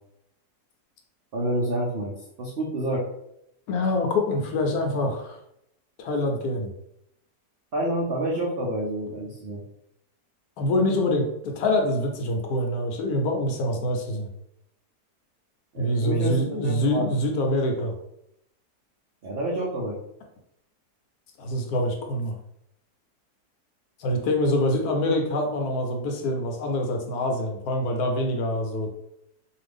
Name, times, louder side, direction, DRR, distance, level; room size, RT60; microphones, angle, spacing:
voice 1, 1.3-3.0 7.7-9.6 15.7-17.1 19.2-20.0, right 1 dB, 75° right, -4 dB, 0.5 m, -28 dB
voice 2, 3.7-5.4 6.0-6.7 10.6-14.3 15.8-17.9 21.4-22.4 24.0-28.9, left 1 dB, 75° left, 2 dB, 1.0 m, -25 dB
2.6 x 2.4 x 3.4 m, 0.78 s
omnidirectional pair, 1.7 m